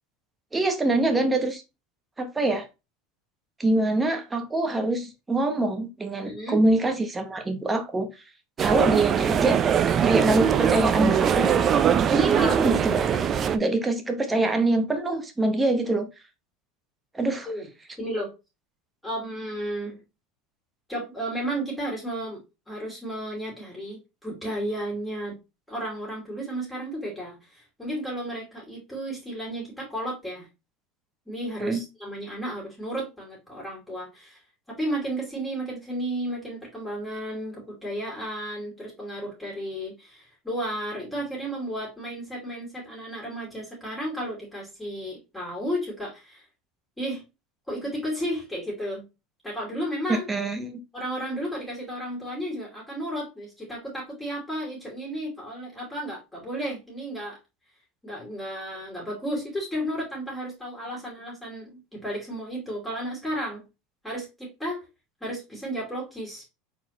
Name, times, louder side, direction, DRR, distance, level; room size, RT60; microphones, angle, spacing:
voice 1, 0.5-1.6 2.2-2.7 3.6-8.1 8.6-9.6 10.0-11.6 12.1-13.2 13.5-16.1 17.1-17.5 31.6-31.8 50.1-50.8, right 2 dB, 15° right, 1.0 m, -24 dB
voice 2, 6.2-6.6 12.3-12.6 17.5-17.7 18.0-18.3 19.0-20.0 20.9-22.4 22.7-25.3 25.7-30.5 31.3-34.4 34.7-46.5 47.0-47.2 47.7-49.0 49.4-50.3 50.9-57.4 58.0-63.6 64.0-64.9 65.2-66.4, right 1 dB, 5° left, 2.7 m, -33 dB
sound 1, 8.6-13.6, right 8 dB, 35° right, 0.5 m, -22 dB
4.4 x 4.2 x 2.9 m
supercardioid pair, 130°, 0 cm